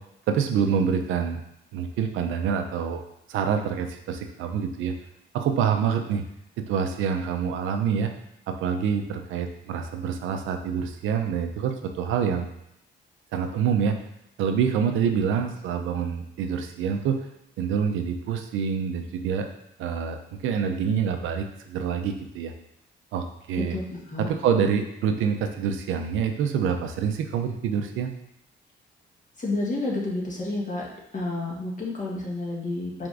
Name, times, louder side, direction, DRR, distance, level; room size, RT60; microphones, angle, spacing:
voice 1, 0.3-1.4 1.7-3.0 3.3-4.9 5.3-6.2 6.7-8.1 8.5-12.5 13.3-13.9 14.4-17.2 17.6-19.5 19.8-22.5 23.1-23.8 24.2-28.1, right 7 dB, 85° right, 6 dB, 0.5 m, -26 dB
voice 2, 23.7-24.3 29.4-30.9 31.1-33.1, left 2 dB, 40° left, -3 dB, 1.3 m, -30 dB
4.7 x 3.5 x 2.5 m, 0.79 s
cardioid pair, 90°, 20 cm